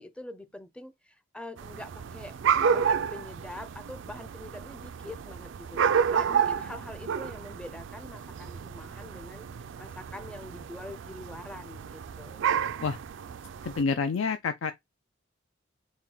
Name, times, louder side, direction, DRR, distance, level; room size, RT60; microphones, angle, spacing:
voice 1, 0.0-2.4 2.7-9.5 9.8-12.4, left 1 dB, 5° left, 0.5 m, -44 dB
sound 1, 1.6-13.8, right 7 dB, 65° right, 0.4 m, -31 dB
voice 2, 13.6-14.7, left 5 dB, 80° left, 0.4 m, -28 dB
4.4 x 2.2 x 3.8 m
head